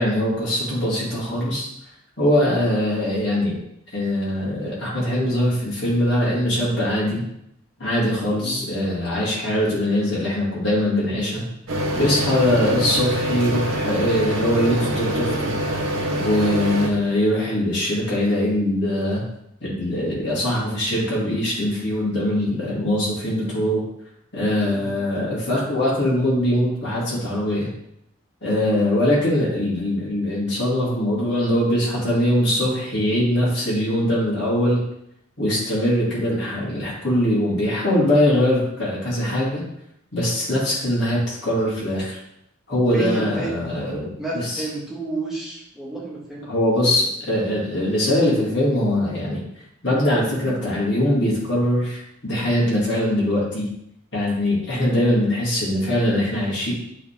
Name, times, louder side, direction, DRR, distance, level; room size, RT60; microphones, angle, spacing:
voice 1, 0.0-1.7 2.2-3.6 3.9-7.2 7.8-11.4 11.9-15.6 16.1-19.2 19.6-23.8 24.3-27.7 28.4-34.8 35.4-39.6 40.1-42.2 42.7-44.1 44.3-44.6 46.5-49.4 49.8-53.7 54.1-56.7, left 1 dB, 55° left, -6 dB, 2.1 m, -22 dB
sound 1, 11.7-16.9, right 1 dB, 80° right, 1.1 m, -25 dB
voice 2, 42.9-43.7 44.2-46.5, right 2 dB, ahead, -6 dB, 1.4 m, -30 dB
8.4 x 3.5 x 3.3 m, 0.78 s
head